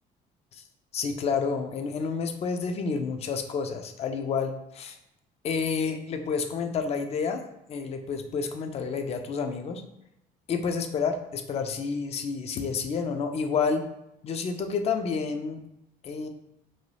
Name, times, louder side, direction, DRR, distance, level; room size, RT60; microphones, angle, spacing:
voice 1, 0.9-5.0 5.4-7.4 7.7-9.8 10.5-13.8 14.2-15.6 16.0-16.3, left 5 dB, 40° left, 6 dB, 0.4 m, -29 dB
2.7 x 2.3 x 3.1 m, 0.83 s
cardioid pair, 110°, 17 cm